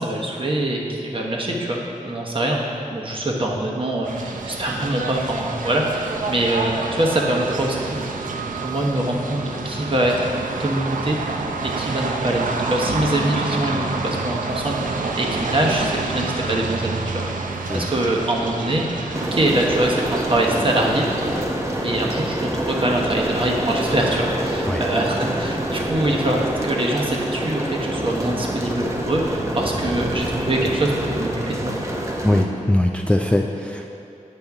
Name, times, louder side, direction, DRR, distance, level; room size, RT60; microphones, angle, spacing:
voice 1, 0.0-2.6 2.9-8.1 8.6-10.3 10.6-11.2 11.6-17.2 17.7-18.8 19.2-21.1 21.8-31.8, right 1 dB, 40° right, -1 dB, 1.0 m, -24 dB
sound 1, 4.0-21.4, right 3 dB, 75° right, 0.5 m, -28 dB
sound 2, 19.1-32.4, right 1 dB, 20° right, 0.7 m, -26 dB
voice 2, 32.2-33.9, left 1 dB, 10° left, 2 dB, 0.3 m, -20 dB
8.6 x 5.3 x 3.5 m, 2.6 s
wide cardioid pair, 70°, 14 cm